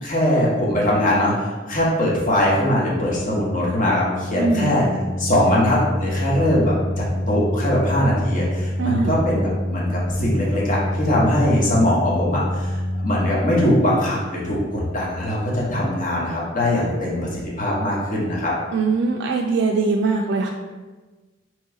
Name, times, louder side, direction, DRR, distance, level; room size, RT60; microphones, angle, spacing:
voice 1, 0.0-4.8 5.2-18.5, left 1 dB, 45° left, -5 dB, 1.1 m, -21 dB
Organ, 3.2-14.0, left 1 dB, ahead, 0.9 m, -27 dB
voice 2, 4.4-4.8 8.8-9.2 18.7-20.5, right 4 dB, 65° right, 1 dB, 0.3 m, -21 dB
3.0 x 3.0 x 4.6 m, 1.3 s
head